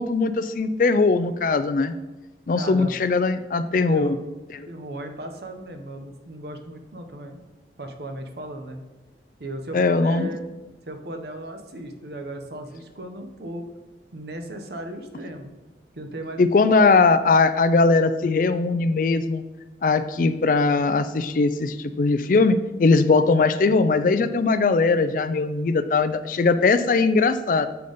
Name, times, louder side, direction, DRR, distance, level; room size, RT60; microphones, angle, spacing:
voice 1, 0.0-1.9 2.5-4.2 9.7-10.3 16.4-19.4 19.8-27.7, left 3 dB, 45° left, 11 dB, 0.3 m, -20 dB
voice 2, 2.5-2.9 3.9-4.2 4.7-7.4 7.8-8.8 9.4-10.4 10.9-13.6 14.1-15.5 15.9-16.4 16.7-17.0, right 1 dB, 60° right, 6 dB, 0.7 m, -36 dB
6.9 x 4.0 x 5.0 m, 1.1 s
head